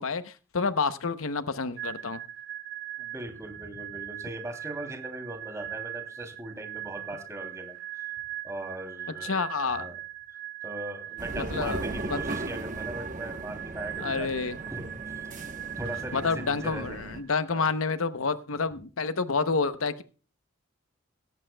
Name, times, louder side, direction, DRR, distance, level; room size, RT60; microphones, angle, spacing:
voice 1, 0.0-2.2 9.2-9.9 11.4-11.8 12.1-12.2 14.0-14.6 16.1-20.0, left 4 dB, 70° left, 0.8 m, -29 dB
sound 1, 1.8-17.4, right 13 dB, 70° right, 2.0 m, -40 dB
voice 2, 3.0-8.2 8.4-10.0 10.6-14.4 14.6-15.3 15.5-17.0 17.5-17.7, right 1 dB, 15° right, 3.0 m, -40 dB
sound 2, 11.2-17.2, right 2 dB, 35° right, 1.0 m, -37 dB
17.5 x 14.5 x 2.3 m
head